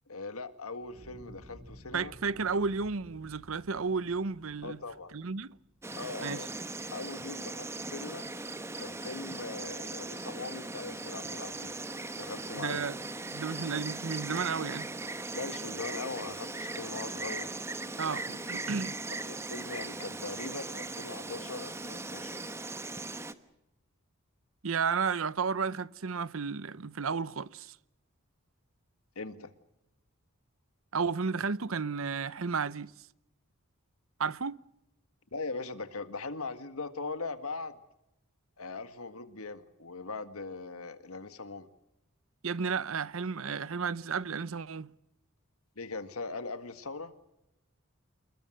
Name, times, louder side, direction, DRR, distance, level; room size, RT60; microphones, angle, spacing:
voice 1, 0.1-2.1 4.6-5.1 6.0-6.5 6.9-8.3 8.8-11.7 12.2-12.8 15.3-17.5 19.2-22.3 29.2-29.5 35.3-37.8 38.6-41.7 45.8-47.1, left 3 dB, 80° left, 1.9 m, -40 dB
Fire, 0.8-5.9, equal, 40° right, 7.5 m, -54 dB
voice 2, 1.9-4.8 5.1-5.5 6.2-6.4 12.6-13.0 13.3-14.9 18.0-19.0 24.6-27.8 30.9-32.9 34.2-34.6 42.4-44.9, right 5 dB, 65° right, 0.8 m, -32 dB
Insect, 5.8-23.3, right 2 dB, 10° right, 1.1 m, -39 dB
28.0 x 21.5 x 6.5 m
head